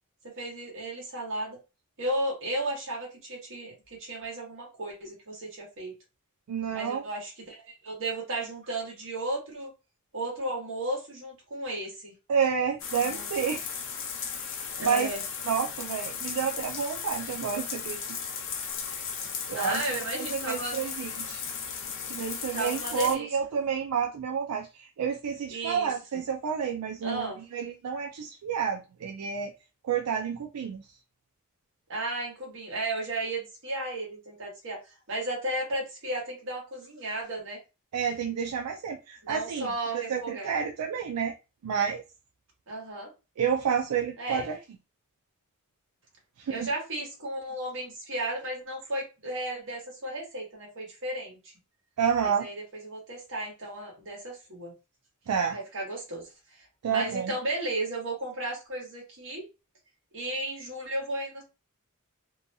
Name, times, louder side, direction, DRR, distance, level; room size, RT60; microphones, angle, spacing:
voice 1, 0.2-1.6 2.0-5.9 6.7-9.7 10.1-12.1 13.0-13.3 14.8-15.2 19.5-20.8 22.5-23.3 25.5-25.9 27.0-27.4 31.9-34.8 35.1-37.6 39.2-40.5 42.7-43.1 44.2-44.5 46.5-51.4 52.2-54.7 55.5-56.3 56.9-59.5 60.1-61.4, right 1 dB, 60° right, -1 dB, 1.3 m, -34 dB
voice 2, 6.5-7.0 12.3-13.7 14.3-15.1 15.5-18.2 19.5-21.4 22.1-29.5 29.8-30.9 37.9-39.7 39.9-41.3 41.6-42.0 43.4-44.6 46.4-46.7 52.0-52.5 55.3-55.6 56.8-57.3, right 7 dB, 85° right, 3 dB, 0.4 m, -30 dB
sound 1, 12.8-23.1, left 6 dB, 60° left, 0.6 m, -36 dB
2.8 x 2.2 x 2.6 m, 0.28 s
head